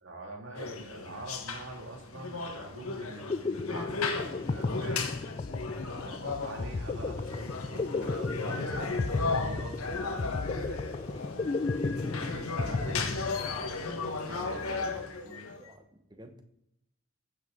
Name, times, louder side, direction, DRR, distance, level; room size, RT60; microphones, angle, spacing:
voice 1, 0.0-5.2 5.9-10.9 12.0-13.8 14.3-15.5, right 1 dB, 60° right, 1 dB, 2.4 m, -45 dB
sound 1, 0.5-15.7, left 3 dB, 90° left, 1.4 m, -36 dB
sound 2, 3.0-13.8, left 3 dB, 30° left, 0.3 m, -34 dB
voice 2, 15.3-16.4, right 1 dB, 20° right, 6 dB, 1.0 m, -53 dB
14.5 x 7.5 x 3.8 m, 0.81 s
head